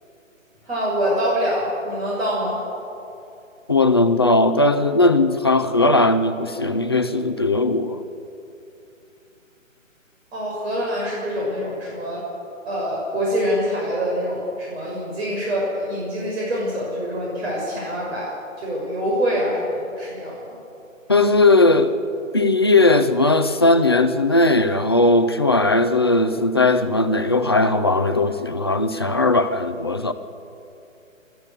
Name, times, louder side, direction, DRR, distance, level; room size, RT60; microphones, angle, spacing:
voice 1, 0.6-2.6 10.3-12.2 12.7-20.6, equal, 50° right, -4 dB, 6.3 m, -25 dB
voice 2, 3.7-8.1 21.1-22.0 22.3-30.1, left 2 dB, 20° left, 8 dB, 0.5 m, -18 dB
24.0 x 13.5 x 8.2 m, 2.8 s
figure-of-eight pair, 145°, 40 cm